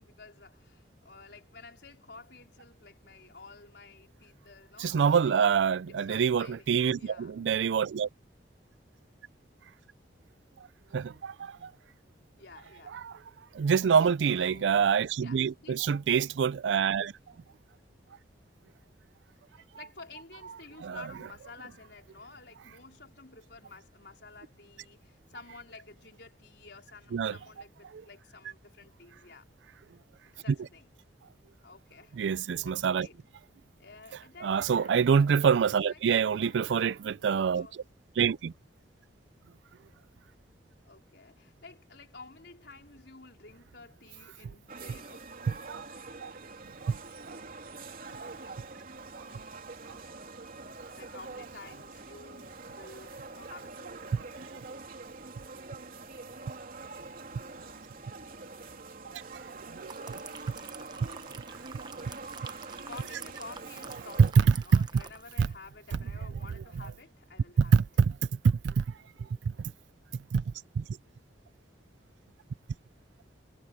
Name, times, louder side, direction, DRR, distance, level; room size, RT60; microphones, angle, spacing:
voice 1, 0.0-5.4 5.9-7.3 12.4-13.2 14.4-14.7 15.2-15.9 19.5-29.5 30.2-30.9 31.6-33.2 33.8-35.1 35.4-37.8 40.8-45.3 50.9-54.0 62.8-67.7, left 3 dB, 70° left, 4.5 m, -51 dB
voice 2, 4.8-8.1 10.9-11.7 13.5-17.1 20.8-21.0 27.1-27.4 32.2-33.1 34.4-37.7 38.2-38.5 45.7-45.8 46.2-46.3 46.8-47.0 48.2-48.3 54.1-54.3 59.7-60.2 61.0-61.1 64.2-64.9 65.4-65.5 67.6-67.8 68.4-68.8 70.3-70.4 70.8-70.9, right 6 dB, 80° right, 0.4 m, -25 dB
sound 1, 44.7-64.3, right 3 dB, 50° right, 3.4 m, -45 dB
sound 2, 59.5-65.6 65.9-66.1, right 5 dB, 25° right, 1.0 m, -49 dB
head